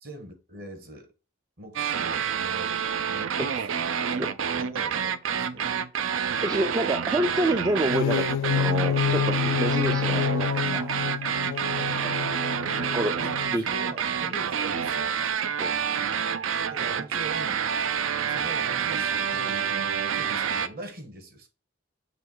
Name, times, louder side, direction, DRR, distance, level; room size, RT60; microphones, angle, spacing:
voice 1, 0.0-1.1 1.6-3.6 4.1-5.8 7.2-7.3 9.9-10.0 13.2-15.1 16.7-17.7 18.3-21.5, right 1 dB, 45° right, 1.4 m, -42 dB
sound 1, 1.8-20.7, right 7 dB, 80° right, 0.5 m, -28 dB
voice 2, 6.4-11.6 12.0-12.3 12.9-13.2 13.5-13.6 15.6-15.7, right 1 dB, 20° right, 0.3 m, -28 dB
sound 2, 7.8-13.7, left 8 dB, 75° left, 0.3 m, -28 dB
6.8 x 3.1 x 4.6 m
head